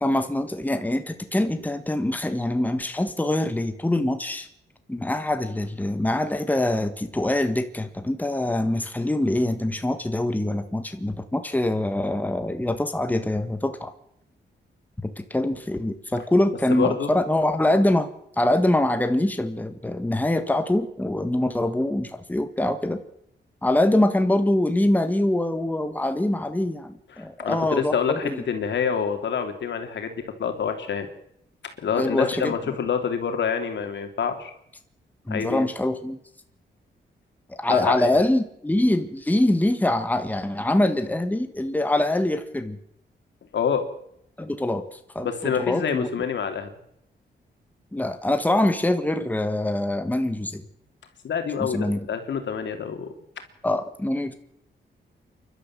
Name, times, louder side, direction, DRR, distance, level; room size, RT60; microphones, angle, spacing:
voice 1, 0.0-4.5 4.9-13.9 15.3-18.1 18.4-23.0 23.6-28.4 31.9-32.5 35.3-36.2 37.5-42.8 44.4-46.1 47.9-50.6 51.6-52.1 53.6-54.3, left 1 dB, 10° left, 8 dB, 1.6 m, -24 dB
voice 2, 16.7-17.1 27.1-31.1 31.8-34.5 35.3-35.7 37.7-38.2 43.5-43.8 45.2-46.7 51.2-53.1, left 7 dB, 75° left, 6 dB, 3.1 m, -27 dB
29.0 x 12.0 x 7.5 m, 0.75 s
wide cardioid pair, 120°, 19 cm